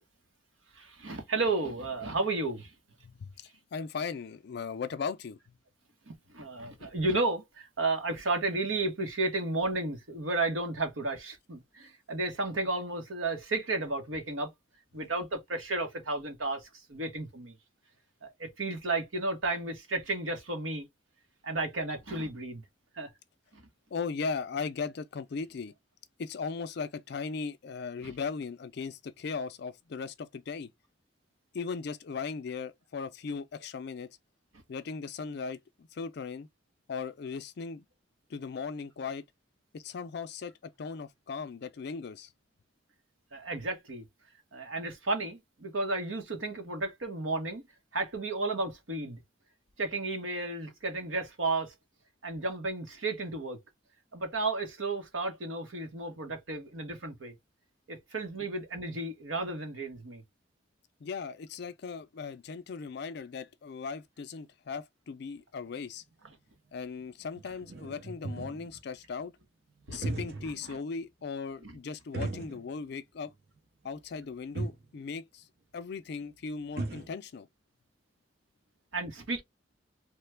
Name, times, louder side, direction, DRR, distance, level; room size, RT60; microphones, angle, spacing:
voice 1, 0.7-2.7 6.1-14.5 14.9-17.5 18.2-20.9 21.4-22.6 22.9-23.1 23.5-23.6 28.0-28.1 43.3-44.0 44.5-47.6 47.9-49.2 49.8-51.7 52.2-53.6 54.1-57.3 57.9-60.2 69.9-70.0 70.4-70.8 71.6-71.8 78.9-79.4, right 2 dB, 80° right, 1.0 m, -33 dB
voice 2, 3.0-5.6 6.6-6.8 23.9-25.7 26.2-30.7 31.5-34.1 34.7-36.5 36.9-37.8 38.3-39.2 39.7-42.3 61.0-66.0 66.7-69.3 69.9-73.3 73.8-75.5 75.7-77.5, left 5 dB, 55° left, 0.4 m, -38 dB
sound 1, 65.8-65.9 66.2-66.3 67.0-67.1 67.3-68.8 69.8-70.7 71.0-71.1 72.1-73.0 73.3-73.4 74.2-74.3 74.5-74.9 76.2-76.3 76.5-77.1, right 2 dB, 55° right, 0.7 m, -37 dB
3.1 x 2.2 x 3.2 m
head